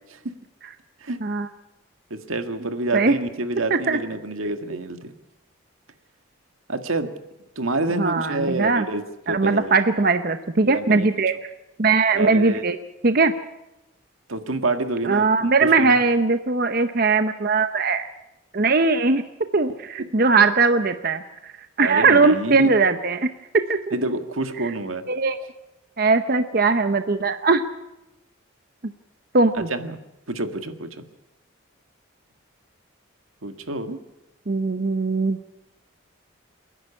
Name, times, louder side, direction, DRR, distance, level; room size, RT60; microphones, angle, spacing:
voice 1, 2.1-5.1 6.7-7.1 7.5-9.7 10.6-11.1 12.1-12.6 14.3-16.0 21.8-22.8 23.9-25.0 29.5-30.0 30.3-31.0 33.4-34.0, right 2 dB, 80° right, 7 dB, 1.8 m, -28 dB
voice 2, 7.9-8.9 9.3-11.3 11.8-12.8 13.0-13.3 15.0-18.1 18.5-19.2 19.5-21.5 21.8-23.3 23.7-24.0 25.1-25.4 26.0-27.6 29.3-29.7 34.5-35.4, right 4 dB, 45° right, 9 dB, 0.8 m, -20 dB
28.0 x 11.0 x 9.9 m, 0.97 s
head